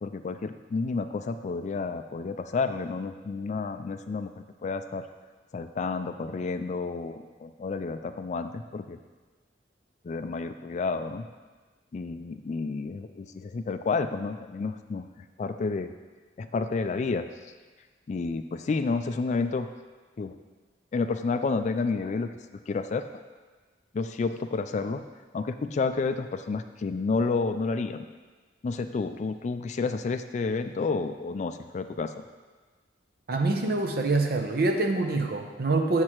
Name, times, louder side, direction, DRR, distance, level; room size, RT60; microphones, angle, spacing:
voice 1, 0.0-5.1 5.5-9.0 10.0-11.2 11.9-15.1 15.4-15.9 16.4-17.3 18.1-19.7 20.2-20.4 20.9-22.3 22.7-23.0 23.9-25.0 25.3-28.0 28.6-32.2, left 4 dB, 40° left, 9 dB, 0.3 m, -30 dB
voice 2, 33.3-36.0, right 2 dB, 55° right, 3 dB, 0.7 m, -25 dB
8.0 x 7.3 x 3.0 m, 1.3 s
head